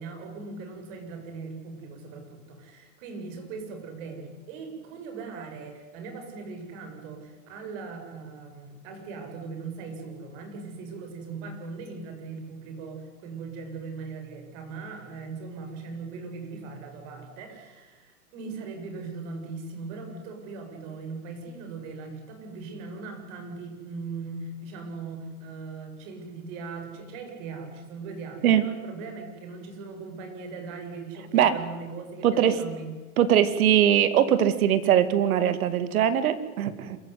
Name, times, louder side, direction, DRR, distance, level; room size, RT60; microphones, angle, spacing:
voice 1, 0.0-32.9, right 4 dB, 55° right, 5 dB, 7.2 m, -39 dB
voice 2, 32.2-32.6 33.2-37.0, right 10 dB, 70° right, 12 dB, 2.4 m, -21 dB
27.0 x 15.5 x 9.7 m, 1.3 s
hypercardioid pair, 110°, 44 cm